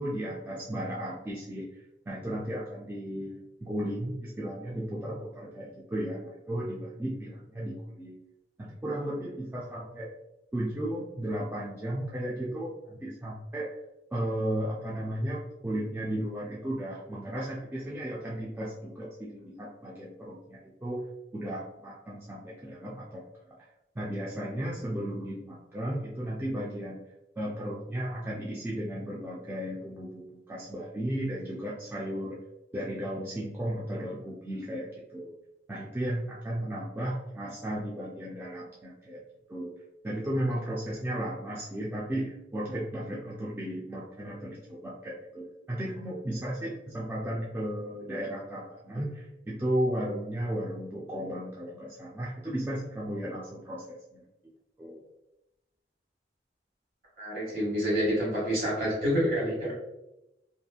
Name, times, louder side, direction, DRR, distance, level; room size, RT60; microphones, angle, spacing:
voice 1, 0.0-1.7 2.1-3.3 3.6-8.1 8.6-10.1 10.5-13.7 14.1-21.0 21.3-23.6 24.0-27.0 27.4-32.4 32.7-35.3 35.7-39.2 39.5-39.7 40.0-54.2 54.8-55.0, right 1 dB, 15° right, -6 dB, 0.3 m, -34 dB
voice 2, 57.2-59.7, equal, 55° right, -4 dB, 1.3 m, -28 dB
2.8 x 2.5 x 2.3 m, 0.91 s
head